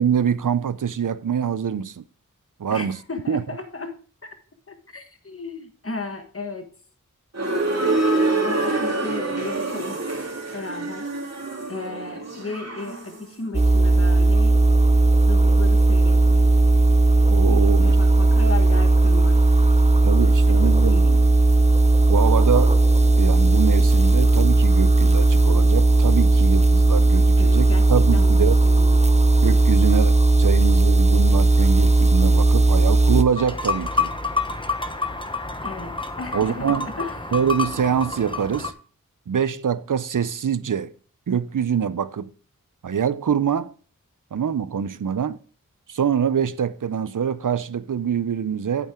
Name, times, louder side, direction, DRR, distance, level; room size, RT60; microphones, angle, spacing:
voice 1, 0.0-2.0 2.6-3.0 3.3-3.4 17.3-18.0 20.0-21.3 22.1-22.7 23.2-28.6 29.4-34.1 36.3-36.9 37.3-38.7 39.3-40.9 41.3-42.3 42.8-43.7 44.3-45.4 45.9-48.9, right 7 dB, 70° right, 0.6 m, -24 dB
voice 2, 2.7-4.0 4.7-6.7 8.4-10.0 10.5-11.1 11.7-14.6 15.3-16.5 17.5-19.4 20.5-21.1 27.4-28.3 28.6-29.0 35.6-37.3, left 3 dB, 40° left, 1.5 m, -35 dB
sound 1, 7.3-13.3, right 2 dB, 50° right, 2.2 m, -26 dB
sound 2, 13.5-33.2, right 2 dB, 20° right, 0.7 m, -16 dB
sound 3, 33.3-38.7, left 4 dB, 15° left, 1.0 m, -28 dB
8.7 x 8.6 x 3.6 m
wide cardioid pair, 55°, 33 cm